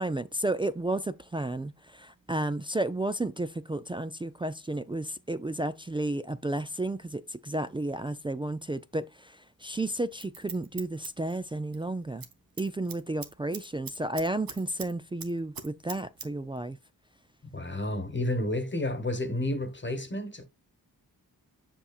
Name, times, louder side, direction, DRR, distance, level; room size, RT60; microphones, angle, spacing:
voice 1, 0.0-12.3 12.6-16.8, right 2 dB, 15° right, 0.4 m, -32 dB
Scissors, 9.9-11.8 12.1-12.3 12.6-14.9 15.2-16.3 16.6-16.7, right 6 dB, 70° right, 1.2 m, -42 dB
voice 2, 17.5-20.5, left 1 dB, 30° left, 1.2 m, -31 dB
6.9 x 5.7 x 2.4 m
cardioid pair, 55°, 36 cm